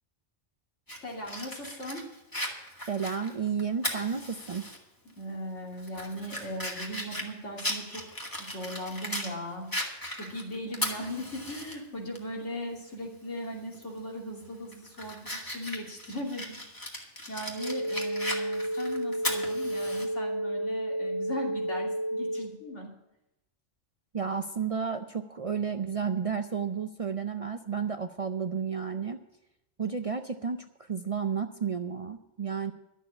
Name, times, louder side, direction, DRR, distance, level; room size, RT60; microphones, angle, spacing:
Fire, 0.9-4.8 5.2-5.3 5.8-9.3 9.7-11.7 12.1-12.2 13.7-14.0 14.5-20.1, left 1 dB, 15° left, 1.8 m, -37 dB
voice 1, 1.0-2.1 5.2-8.1 8.4-9.7 10.1-16.6 16.9-22.9, equal, 90° left, -1 dB, 3.1 m, -38 dB
voice 2, 2.9-4.6 24.1-29.2 29.8-32.7, right 6 dB, 45° right, 8 dB, 0.4 m, -32 dB
sound 1, 17.5-22.5, right 1 dB, 90° right, 1.5 m, -31 dB
12.0 x 7.2 x 8.4 m, 0.89 s
omnidirectional pair, 1.2 m